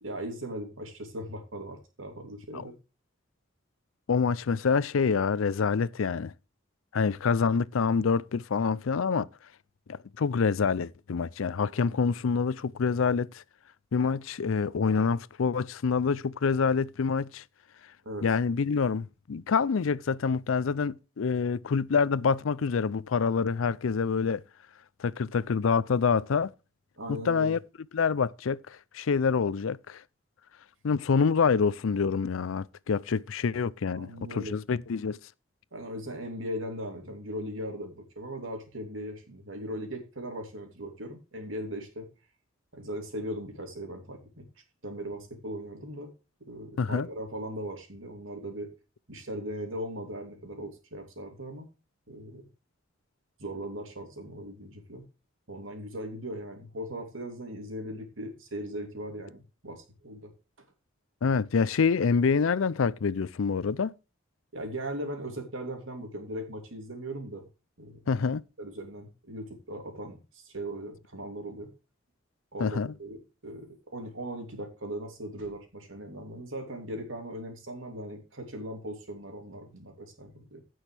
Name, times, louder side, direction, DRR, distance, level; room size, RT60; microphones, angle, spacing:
voice 1, 0.0-2.7 18.0-18.3 27.0-27.6 33.9-34.6 35.7-42.1 42.7-44.4 44.8-46.1 46.4-48.7 49.1-51.7 52.1-52.5 53.4-55.1 55.5-60.3 64.5-67.5 67.8-68.0 68.6-71.7 72.5-73.2 73.4-80.6, right 1 dB, 75° right, 3.0 m, -39 dB
voice 2, 4.1-6.3 6.9-9.3 10.2-13.3 13.9-17.4 18.2-24.4 25.0-26.5 27.1-27.6 27.9-28.6 28.9-30.0 30.8-35.2 46.8-47.1 61.2-63.9 68.1-68.4 72.6-72.9, left 5 dB, 80° left, 0.5 m, -26 dB
16.0 x 6.3 x 3.4 m
head